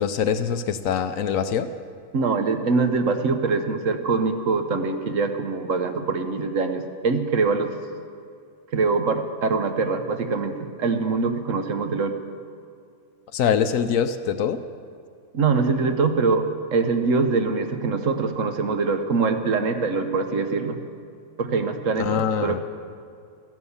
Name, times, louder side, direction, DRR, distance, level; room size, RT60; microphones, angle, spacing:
voice 1, 0.0-1.7 13.3-14.6 22.0-22.6, left 8 dB, 70° left, 10 dB, 1.0 m, -23 dB
voice 2, 2.1-7.7 8.7-12.2 15.3-16.5 16.7-20.8 21.4-22.6, right 4 dB, 60° right, 7 dB, 1.3 m, -23 dB
14.5 x 10.5 x 7.1 m, 2.4 s
omnidirectional pair, 1.6 m